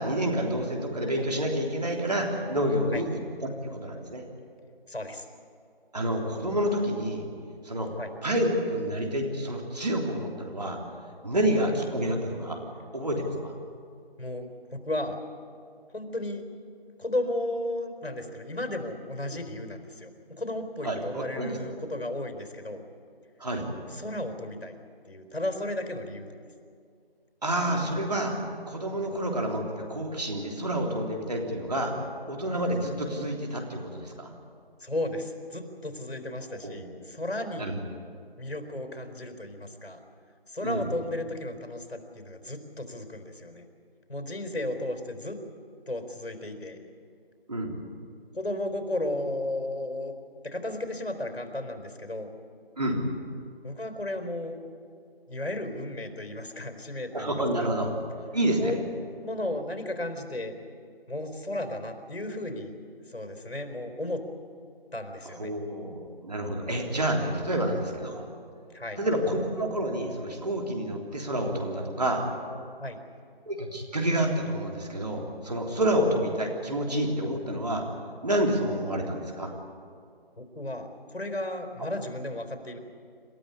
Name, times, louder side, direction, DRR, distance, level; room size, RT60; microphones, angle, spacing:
voice 1, 0.0-3.1 3.6-4.2 5.9-7.2 7.6-7.9 8.2-10.8 11.2-12.6 12.9-13.5 20.8-21.6 23.4-23.7 27.4-28.4 28.7-31.9 32.3-34.3 36.6-36.8 37.5-37.8 40.6-40.8 47.5-47.7 52.8-53.0 57.1-57.9 58.3-58.7 65.4-68.2 69.0-72.2 73.5-77.8 78.2-79.5 81.8-81.9, right 1 dB, 40° right, 1 dB, 3.4 m, -28 dB
voice 2, 4.9-5.3 8.0-8.1 14.2-15.2 15.9-16.4 17.0-22.8 23.9-24.8 25.0-26.4 29.1-29.2 34.8-37.8 38.4-40.0 40.5-43.7 44.1-45.4 45.9-46.8 48.3-50.1 50.4-52.3 53.6-54.6 55.3-57.7 58.6-58.7 59.1-60.5 61.1-62.7 63.1-64.2 64.9-65.5 68.7-69.0 72.8-73.0 80.4-82.8, left 1 dB, 85° left, 6 dB, 4.3 m, -34 dB
28.0 x 13.5 x 9.9 m, 2.3 s
figure-of-eight pair, 170°, 30 cm